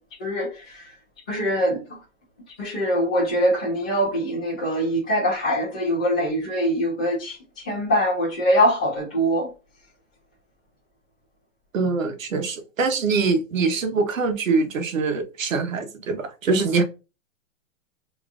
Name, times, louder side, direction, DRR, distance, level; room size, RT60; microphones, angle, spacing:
voice 1, 1.3-1.8 2.6-7.4 7.7-9.5, equal, 5° left, 0.4 m, -23 dB
voice 2, 11.7-16.8, right 4 dB, 90° right, 1.1 m, -23 dB
2.9 x 2.5 x 3.6 m
hypercardioid pair, 170°, 39 cm